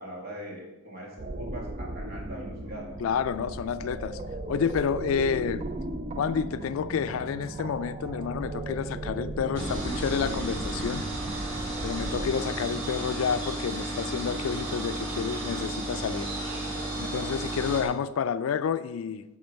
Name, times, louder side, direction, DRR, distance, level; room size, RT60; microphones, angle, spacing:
voice 1, 0.0-2.9 17.0-17.2, right 1 dB, 50° right, 2.1 m, -41 dB
sound 1, 1.2-12.3, right 2 dB, 30° right, 0.4 m, -36 dB
voice 2, 3.0-4.2 4.5-5.6 6.2-11.1 11.8-16.3 17.0-19.2, left 7 dB, 75° left, 0.3 m, -29 dB
sound 2, 9.6-17.9, right 1 dB, 90° right, 2.3 m, -33 dB
7.9 x 3.7 x 5.3 m
head